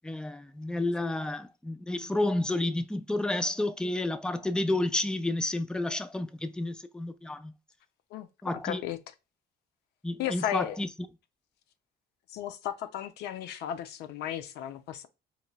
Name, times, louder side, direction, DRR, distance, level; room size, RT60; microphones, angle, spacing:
voice 1, 0.0-7.5 8.4-8.8 10.0-10.9, left 2 dB, 5° left, 0.3 m, -30 dB
voice 2, 8.6-9.0 10.2-10.8 12.3-15.1, left 11 dB, 80° left, 0.5 m, -34 dB
4.0 x 3.0 x 2.2 m
cardioid pair, 110°, 17 cm